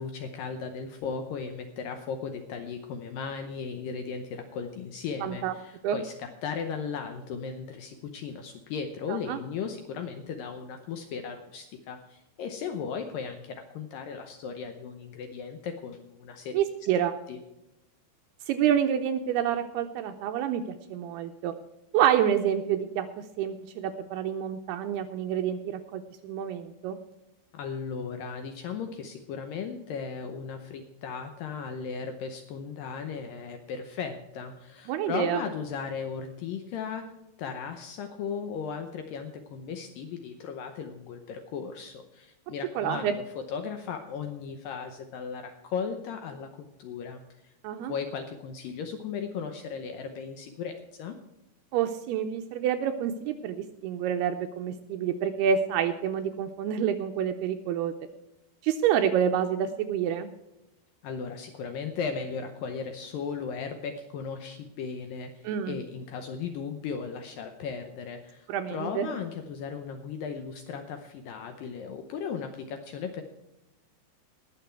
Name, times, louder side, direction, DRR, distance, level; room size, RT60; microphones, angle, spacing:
voice 1, 0.0-16.6 17.3-17.4 27.5-37.1 37.4-43.2 43.5-47.5 47.9-51.2 61.0-73.2, left 6 dB, 85° left, 6 dB, 2.0 m, -36 dB
voice 2, 5.2-5.5 5.8-6.0 9.1-9.4 16.5-17.2 18.5-21.5 21.9-23.1 23.4-27.0 34.9-35.4 42.8-43.1 47.6-47.9 51.7-57.9 58.6-60.3 65.4-65.8 68.5-69.1, right 9 dB, 85° right, 7 dB, 2.4 m, -28 dB
19.5 x 6.9 x 4.6 m, 0.92 s
omnidirectional pair, 5.1 m